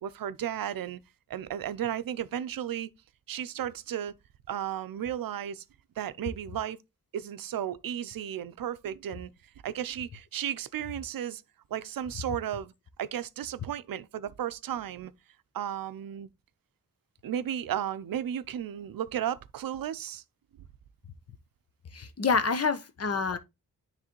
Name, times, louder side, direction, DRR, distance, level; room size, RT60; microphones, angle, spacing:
voice 1, 0.0-1.0 1.3-2.9 3.3-4.1 4.5-5.6 6.0-6.8 7.1-9.3 9.6-11.4 11.7-12.7 13.0-15.1 15.5-16.3 17.2-20.2, right 10 dB, 80° right, 0.5 m, -34 dB
voice 2, 21.9-23.4, left 5 dB, 45° left, 0.8 m, -27 dB
9.7 x 3.3 x 2.9 m
wide cardioid pair, 85°, 34 cm